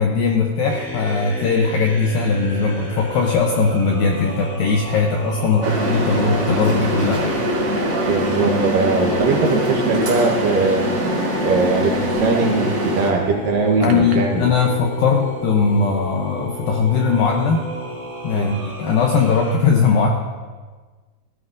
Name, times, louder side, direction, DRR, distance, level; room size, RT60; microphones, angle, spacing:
voice 1, 0.0-7.3 13.8-17.7 18.2-20.1, left 5 dB, 80° left, 1 dB, 2.1 m, -19 dB
sound 1, 0.7-19.6, right 1 dB, 5° left, 2.7 m, -32 dB
sound 2, 5.6-13.1, equal, 35° right, 1.8 m, -23 dB
voice 2, 8.1-10.9 11.4-14.5 18.3-18.5, right 4 dB, 65° right, 0 dB, 2.3 m, -20 dB
16.0 x 14.0 x 2.6 m, 1.4 s
omnidirectional pair, 5.0 m